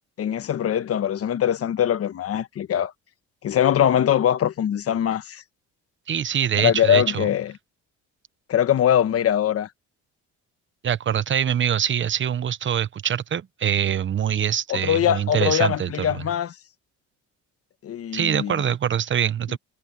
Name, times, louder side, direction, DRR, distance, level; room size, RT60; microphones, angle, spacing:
voice 1, 0.2-2.9 3.4-5.4 6.6-7.5 8.5-9.7 14.7-16.6 17.8-18.6, left 10 dB, 50° left, 1.2 m, -22 dB
voice 2, 6.1-7.3 10.8-16.2 18.1-19.6, right 9 dB, 40° right, 0.9 m, -24 dB
cardioid pair, 135°, 31 cm